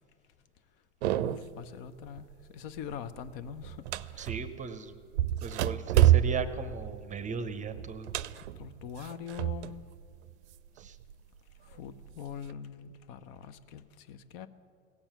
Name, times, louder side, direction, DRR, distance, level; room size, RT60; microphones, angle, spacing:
sound 1, 1.0-1.6 2.0-2.4 2.8-4.6 5.1-9.8 10.1-11.1 11.7-12.5, right 13 dB, 65° right, 0.5 m, -28 dB
voice 1, 1.1-4.3 8.4-9.8 11.7-14.5, left 8 dB, 50° left, 13 dB, 0.7 m, -43 dB
voice 2, 4.2-4.9 5.4-8.1 10.8-11.0, right 5 dB, 20° right, 11 dB, 0.7 m, -37 dB
16.5 x 7.2 x 6.8 m, 2.2 s
hypercardioid pair, 85°, 37 cm